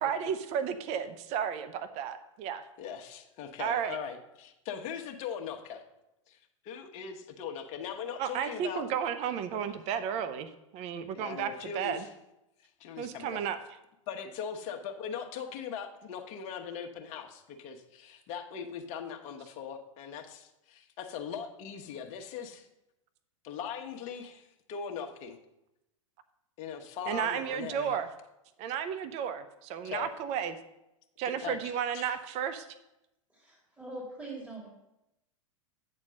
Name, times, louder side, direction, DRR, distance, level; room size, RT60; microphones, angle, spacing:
voice 1, 0.0-2.7 3.6-4.0 8.2-12.0 13.0-13.6 27.1-28.1 28.6-30.5 31.2-32.7, right 8 dB, 40° right, 11 dB, 0.7 m, -33 dB
voice 2, 2.8-5.8 6.3-6.4 6.6-8.9 9.5-9.6 11.1-12.1 12.6-13.4 14.1-22.7 23.4-25.4 26.6-28.0 29.8-30.1 31.4-31.6 31.9-32.2, left 7 dB, 40° left, 3 dB, 1.1 m, -40 dB
voice 3, 33.3-34.7, right 2 dB, 5° right, -2 dB, 2.2 m, -42 dB
8.7 x 4.4 x 6.3 m, 0.89 s
hypercardioid pair, 105°, 17 cm